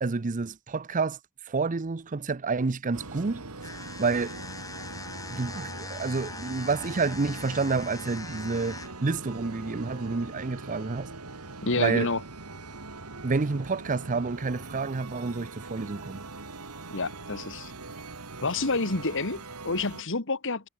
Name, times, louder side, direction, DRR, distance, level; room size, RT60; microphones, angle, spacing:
voice 1, 0.0-1.2 1.5-3.4 4.0-4.3 5.3-11.1 11.8-12.1 13.2-16.2, right 4 dB, 35° right, 0.6 m, -29 dB
sound 1, 2.9-20.0, right 3 dB, 90° right, 2.7 m, -42 dB
sound 2, 3.6-9.1, left 3 dB, 15° left, 3.2 m, -41 dB
voice 2, 11.6-12.2 16.9-17.7 18.4-20.7, left 3 dB, 60° left, 2.1 m, -29 dB
head